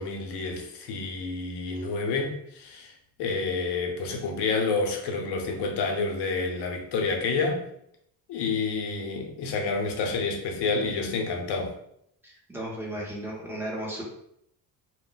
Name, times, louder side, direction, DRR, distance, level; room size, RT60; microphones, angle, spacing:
voice 1, 0.0-2.9 3.2-7.6 8.3-11.7, left 4 dB, 90° left, 2 dB, 0.7 m, -29 dB
voice 2, 12.2-14.0, right 1 dB, 5° right, -4 dB, 0.8 m, -35 dB
2.2 x 2.1 x 3.8 m, 0.73 s
cardioid pair, 140°, 39 cm